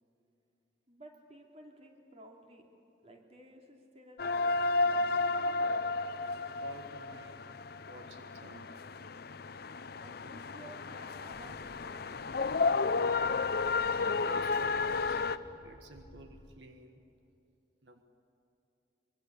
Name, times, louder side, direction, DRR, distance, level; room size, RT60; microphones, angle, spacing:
voice 1, 0.9-4.5 4.8-5.4 10.0-12.3, right 1 dB, 35° right, 2 dB, 2.8 m, -55 dB
sound 1, 4.2-15.4, left 3 dB, 60° left, 0.7 m, -32 dB
voice 2, 6.4-8.8 14.0-15.3 15.6-17.0 17.8-18.0, right 1 dB, 80° right, 6 dB, 1.5 m, -51 dB
sound 2, 11.3-16.6, left 1 dB, 40° left, 2.0 m, -56 dB
24.5 x 23.0 x 8.3 m, 2.7 s
head